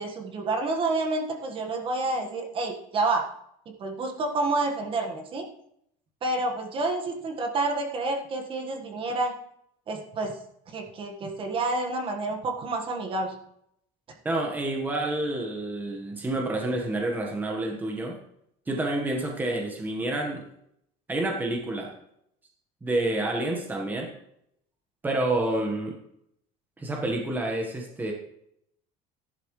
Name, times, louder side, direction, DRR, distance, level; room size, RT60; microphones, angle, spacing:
voice 1, 0.0-3.3 3.6-5.4 6.2-9.4 9.9-10.4 10.7-13.3, right 2 dB, 30° right, 3 dB, 1.6 m, -29 dB
voice 2, 14.2-18.2 18.7-20.4 21.1-21.9 22.8-24.1 25.0-25.9 26.8-28.1, right 2 dB, 10° right, 1 dB, 1.4 m, -28 dB
14.0 x 11.5 x 3.2 m, 0.74 s
cardioid pair, 165°, 17 cm